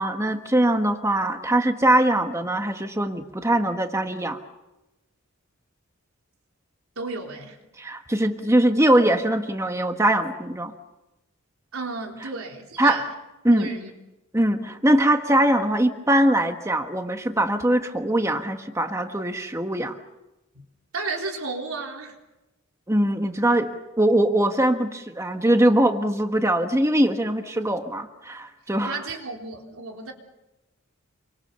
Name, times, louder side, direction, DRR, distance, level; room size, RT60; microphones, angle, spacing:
voice 1, 0.0-4.4 7.8-10.7 12.8-13.1 13.4-13.7 14.3-20.0 22.9-29.0, right 1 dB, 15° right, 5 dB, 1.4 m, -22 dB
voice 2, 7.0-7.6 11.7-13.1 13.5-13.9 20.5-20.6 20.9-22.1 28.8-30.1, right 3 dB, 85° right, 2 dB, 3.8 m, -33 dB
28.0 x 24.0 x 7.0 m, 1.0 s
head